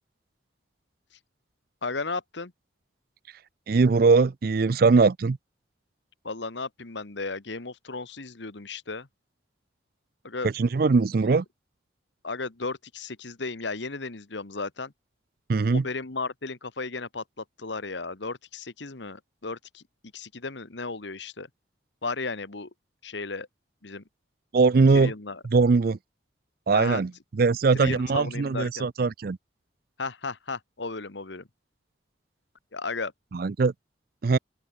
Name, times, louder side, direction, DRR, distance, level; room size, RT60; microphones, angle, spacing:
voice 1, 1.8-2.5 6.2-9.1 10.2-10.5 11.2-11.4 12.2-14.9 15.7-19.8 20.1-21.5 22.0-22.7 23.0-23.5 23.8-24.0 24.9-25.4 26.7-27.0 27.8-28.9 30.0-31.5 32.7-33.1, left 3 dB, 70° left, 1.4 m, -34 dB
voice 2, 3.7-5.4 10.4-11.4 15.5-15.9 24.5-25.1 25.4-26.0 26.7-29.4 33.3-33.7 34.2-34.4, right 4 dB, 50° right, 0.4 m, -21 dB
open air
head